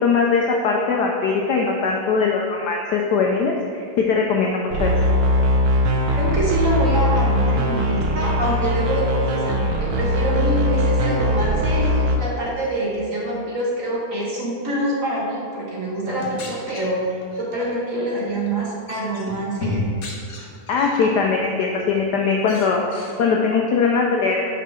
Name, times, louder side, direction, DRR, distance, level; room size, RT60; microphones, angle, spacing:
voice 1, 0.0-4.9 20.7-24.5, left 5 dB, 85° left, 0 dB, 0.9 m, -21 dB
sound 1, 4.7-12.2, left 1 dB, 70° right, 1.4 m, -20 dB
voice 2, 6.1-19.8, right 1 dB, 45° right, -5 dB, 1.4 m, -25 dB
sound 2, 16.1-17.7 18.3-18.5 18.9-21.2 21.6-22.0 22.4-23.2, left 1 dB, 50° left, 1.3 m, -33 dB
6.0 x 4.6 x 5.6 m, 2.3 s
omnidirectional pair, 2.4 m